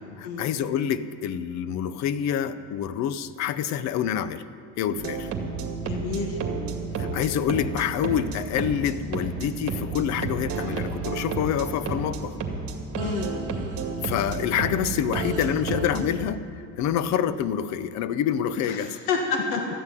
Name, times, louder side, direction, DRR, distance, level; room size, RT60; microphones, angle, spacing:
voice 1, 0.2-4.4 4.8-5.3 7.0-12.4 14.0-16.5 16.7-19.0, left 9 dB, 60° left, 14 dB, 0.7 m, -27 dB
sound 1, 4.9-16.2, right 4 dB, 45° right, 2.2 m, -31 dB
voice 2, 5.8-6.4 13.0-13.3 18.6-19.7, left 4 dB, 80° left, 2 dB, 1.8 m, -29 dB
13.5 x 9.8 x 9.2 m, 2.3 s
cardioid pair, 130°, 32 cm